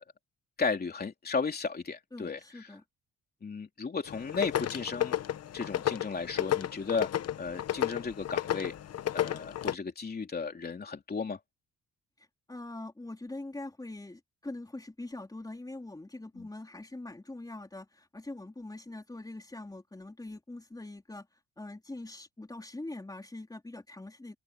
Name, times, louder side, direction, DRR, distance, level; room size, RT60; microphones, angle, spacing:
voice 1, 0.6-2.7 3.4-5.2 5.5-7.1 7.4-8.7 9.1-11.4 16.4-16.5, left 4 dB, 30° left, 2.9 m, -34 dB
voice 2, 2.1-2.8 12.5-21.3 21.6-24.4, left 2 dB, 10° left, 3.7 m, -43 dB
sound 1, 4.1-9.7, left 11 dB, 55° left, 1.0 m, -32 dB
open air
cardioid pair, 90°, 30 cm